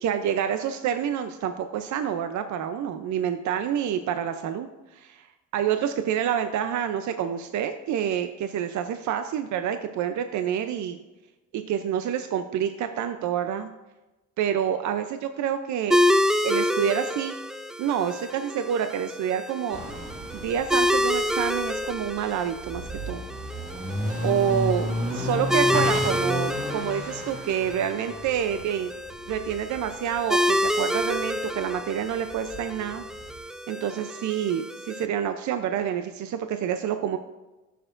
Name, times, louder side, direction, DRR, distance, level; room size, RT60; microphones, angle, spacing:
voice 1, 0.0-4.7 4.9-5.3 5.5-11.0 11.5-13.7 14.4-16.0 16.4-17.3 17.8-19.8 20.3-23.2 24.2-24.9 25.1-28.9 29.3-33.0 33.7-37.2, right 9 dB, 70° right, 8 dB, 0.6 m, -28 dB
sound 1, 15.9-35.1, left 1 dB, ahead, 0.4 m, -28 dB
sound 2, 19.7-30.7 31.0-33.4, equal, 25° right, 2.0 m, -33 dB
14.5 x 6.7 x 2.5 m, 1.1 s
cardioid pair, 90°, 30 cm